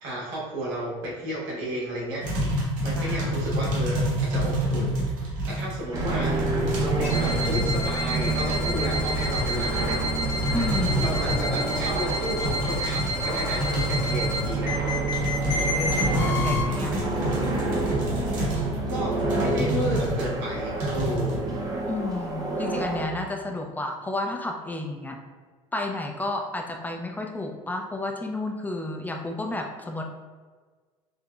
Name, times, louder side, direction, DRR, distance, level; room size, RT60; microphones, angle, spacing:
voice 1, 0.0-2.3 2.8-6.4 6.8-10.0 11.0-14.8 18.9-21.4, right 1 dB, 85° right, -5 dB, 1.2 m, -32 dB
sound 1, 2.2-20.3 20.8-21.4, equal, 65° right, 0.9 m, -28 dB
voice 2, 3.0-3.3 10.5-11.0 15.4-16.9 18.5-18.7 21.9-25.2 25.7-30.0, left 2 dB, 10° left, 2 dB, 0.3 m, -31 dB
sound 2, 5.9-23.1, right 2 dB, 25° right, 0.6 m, -29 dB
sound 3, 7.0-16.6, left 1 dB, 65° left, 0.8 m, -31 dB
5.3 x 2.1 x 2.3 m, 1.5 s
supercardioid pair, 110°, 14 cm